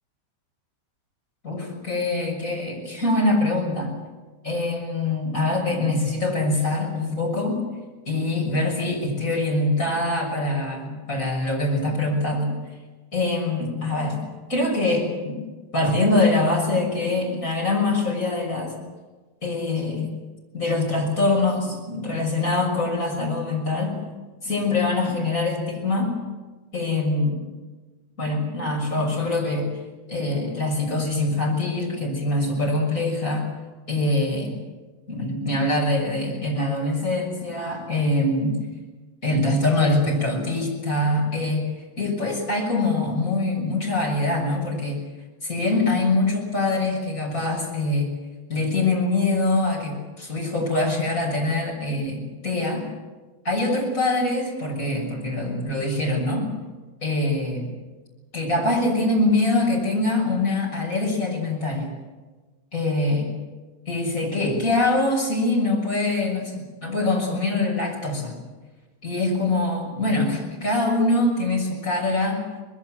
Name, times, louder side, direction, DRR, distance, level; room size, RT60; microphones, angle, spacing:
voice 1, 1.4-3.9 4.4-7.6 8.0-12.5 13.1-14.2 14.5-15.4 15.7-18.7 19.4-20.1 20.5-24.0 24.4-26.1 26.7-27.4 28.2-29.7 30.1-33.5 33.9-34.5 35.1-38.6 39.2-41.7 42.0-45.0 45.4-48.1 48.5-52.8 53.4-56.5 57.0-57.7 58.3-61.9 62.7-63.3 63.9-68.3 69.0-72.4, left 2 dB, 15° left, -1 dB, 6.6 m, -24 dB
25.0 x 21.5 x 7.7 m, 1.3 s
omnidirectional pair, 5.3 m